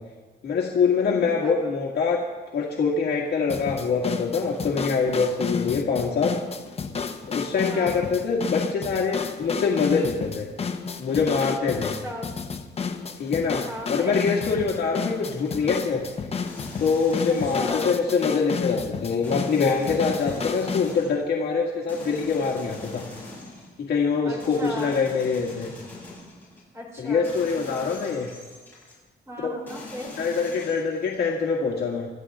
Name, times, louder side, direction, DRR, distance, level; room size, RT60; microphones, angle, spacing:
voice 1, 0.4-2.2 2.5-6.3 7.3-10.5 11.0-11.9 13.2-16.0 16.8-23.0 23.9-25.7 27.0-28.3 30.2-32.1, left 5 dB, 65° left, -3 dB, 2.0 m, -24 dB
voice 2, 1.1-1.7 7.6-8.0 8.3-8.4 11.7-12.3 13.7-14.2 17.3-17.9 24.2-24.9 26.7-27.3 29.3-30.1, equal, 15° right, -2 dB, 4.2 m, -36 dB
sound 1, 3.5-21.0, left 5 dB, 35° left, 1.0 m, -31 dB
sound 2, 16.5-18.5 19.2-21.3 21.9-23.8 24.4-26.6 27.2-29.0 29.7-31.3, left 2 dB, 10° left, 7.2 m, -42 dB
27.0 x 13.5 x 3.7 m, 1.3 s
wide cardioid pair, 165°, 18 cm